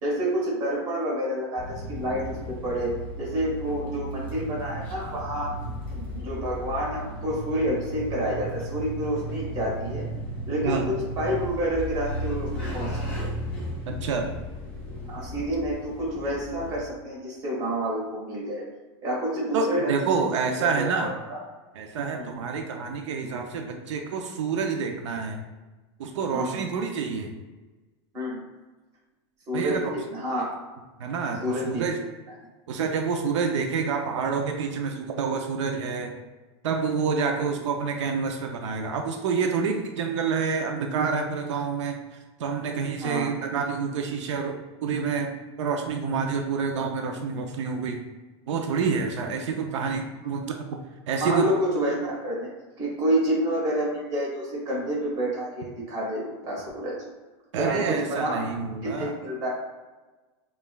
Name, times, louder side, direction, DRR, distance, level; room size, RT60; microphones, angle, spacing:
voice 1, 0.0-2.9 3.2-5.5 5.9-10.1 10.5-13.3 15.1-18.7 19.0-19.9 20.2-20.3 20.6-21.4 22.2-22.4 26.3-26.6 28.1-28.4 29.5-30.4 31.4-31.8 43.0-43.4 51.2-52.5 52.8-57.0 57.5-58.4 58.8-59.5, right 1 dB, 25° right, -5 dB, 1.0 m, -29 dB
sound 1, 1.6-16.8, equal, 10° left, 0.9 m, -35 dB
voice 2, 13.9-14.3 19.5-21.1 21.8-25.4 26.0-27.3 29.5-30.0 31.0-32.0 32.7-36.1 36.6-42.0 42.4-45.3 45.6-48.0 48.5-50.7 51.1-51.5 57.5-59.1, right 5 dB, 85° right, 3 dB, 0.5 m, -28 dB
5.1 x 2.3 x 2.2 m, 1.2 s
supercardioid pair, 180°, 15 cm